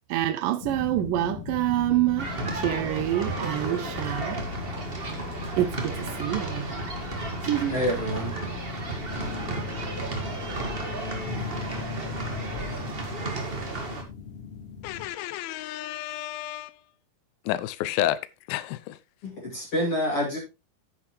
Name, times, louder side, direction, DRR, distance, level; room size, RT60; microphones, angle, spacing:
voice 1, 0.1-4.4 5.6-6.8 7.4-7.8, right 13 dB, 75° right, 2.1 m, -27 dB
sound 1, 0.6-15.1, left 6 dB, 60° left, 1.8 m, -39 dB
sound 2, 2.2-14.0, right 2 dB, 60° right, 0.6 m, -33 dB
sound 3, 4.1-11.1, left 3 dB, 5° left, 2.7 m, -45 dB
voice 2, 7.7-8.3 19.2-20.4, equal, 40° left, 3.2 m, -27 dB
voice 3, 14.8-16.7 17.5-18.2 18.5-19.0, left 13 dB, 80° left, 2.5 m, -30 dB
9.6 x 9.5 x 3.1 m
omnidirectional pair, 4.4 m